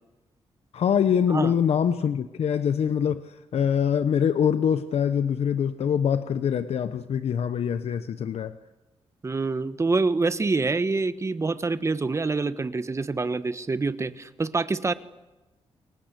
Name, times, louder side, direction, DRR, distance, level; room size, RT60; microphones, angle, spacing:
voice 1, 0.7-8.5, left 8 dB, 70° left, 11 dB, 1.1 m, -24 dB
voice 2, 9.2-14.9, right 3 dB, 25° right, 13 dB, 1.4 m, -26 dB
29.5 x 23.0 x 8.3 m, 1.1 s
wide cardioid pair, 120°, 11 cm